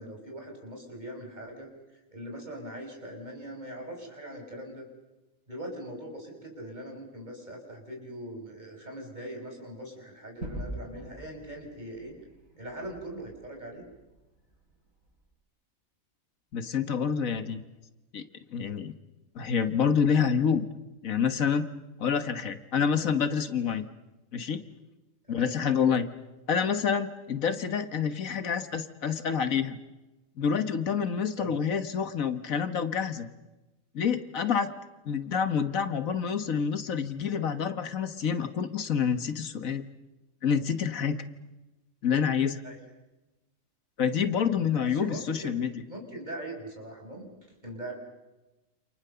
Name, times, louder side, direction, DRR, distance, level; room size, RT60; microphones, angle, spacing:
voice 1, 0.0-1.7 2.1-4.8 5.5-12.1 12.6-13.8 25.3-25.5 31.4-31.5 42.6-42.8 44.7-47.3 47.6-47.9, right 1 dB, 30° right, 2 dB, 5.8 m, -41 dB
Gunshot gunfire / Fireworks / Boom, 10.4-15.2, right 1 dB, 80° right, 7.2 m, -44 dB
voice 2, 16.5-17.6 18.1-18.2 18.5-18.9 19.4-20.6 21.0-21.7 22.0-23.9 24.3-24.6 25.3-26.1 26.5-29.8 30.4-33.3 33.9-34.7 35.1-39.8 40.4-41.2 42.0-42.6 44.0-45.7, left 7 dB, 80° left, 10 dB, 1.8 m, -27 dB
28.5 x 28.0 x 6.9 m, 1.1 s
omnidirectional pair, 1.4 m